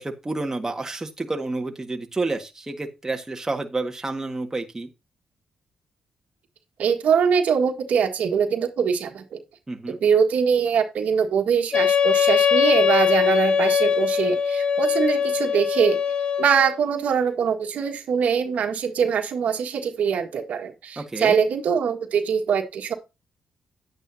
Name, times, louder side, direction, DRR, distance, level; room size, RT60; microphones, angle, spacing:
voice 1, 0.0-4.9 9.7-10.0 21.0-21.4, right 2 dB, 20° right, 3 dB, 1.6 m, -29 dB
voice 2, 6.8-9.4 9.9-16.0 16.4-22.9, right 7 dB, 75° right, 4 dB, 1.7 m, -23 dB
Wind instrument woodwind instrument, 11.7-16.8, left 7 dB, 45° left, 0.6 m, -21 dB
10.5 x 8.9 x 2.8 m, 0.26 s
cardioid pair, 80°, 2 cm